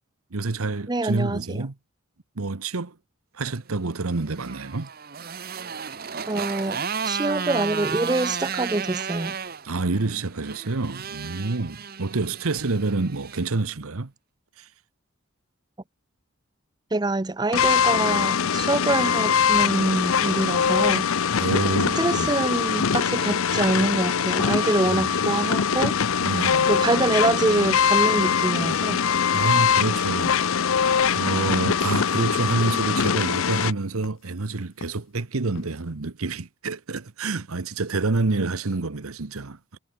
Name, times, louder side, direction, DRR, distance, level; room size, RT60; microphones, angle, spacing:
voice 1, 0.3-1.7 2.4-2.9 3.4-4.9 9.6-14.1 14.6-14.7 21.4-22.4 24.9-25.1 26.2-26.8 29.3-30.4 31.1-39.8, right 3 dB, 85° right, 1.1 m, -28 dB
voice 2, 0.9-1.7 6.3-9.4 16.9-21.1 22.0-26.0 26.7-29.1, right 2 dB, 20° right, 0.5 m, -25 dB
Motorcycle, 4.1-13.5, right 6 dB, 45° right, 1.0 m, -33 dB
sound 1, 17.5-33.7, left 7 dB, 75° left, 0.7 m, -22 dB
sound 2, 26.4-28.4 28.7-35.9, left 2 dB, 60° left, 2.2 m, -47 dB
head